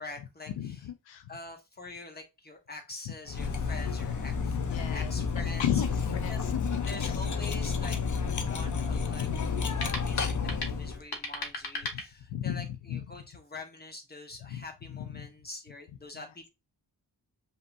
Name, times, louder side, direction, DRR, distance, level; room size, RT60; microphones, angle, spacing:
voice 1, 0.0-0.8 1.3-5.8 6.3-6.4 6.8-8.0 8.3-9.3 9.7-16.5, left 2 dB, 20° left, 1.3 m, -45 dB
voice 2, 0.6-1.3 3.1-3.2 4.5-5.1 5.6-7.3 9.1-9.4 11.9-12.0 12.3-13.1 14.5-14.6 14.9-15.3 16.1-16.2, left 10 dB, 90° left, 0.6 m, -35 dB
Cutlery silverware, 3.3-11.0, left 5 dB, 45° left, 0.8 m, -31 dB
sound 1, 9.7-12.7, left 2 dB, 60° left, 1.1 m, -41 dB
5.3 x 2.9 x 2.6 m
cardioid pair, 60°, 43 cm